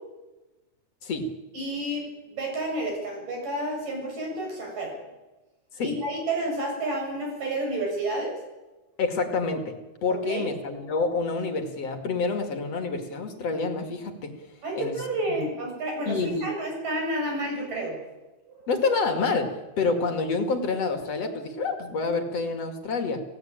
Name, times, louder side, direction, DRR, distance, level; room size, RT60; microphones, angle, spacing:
voice 1, 1.5-5.0 5.8-8.3 10.1-10.5 14.6-18.0 18.5-18.7, right 1 dB, 75° right, 1 dB, 8.8 m, -30 dB
voice 2, 9.0-9.7 10.0-14.3 14.8-15.0 15.3-15.4 16.1-16.4 18.7-23.2, left 4 dB, 50° left, 5 dB, 3.2 m, -27 dB
28.5 x 17.0 x 9.1 m, 1.1 s
omnidirectional pair, 3.8 m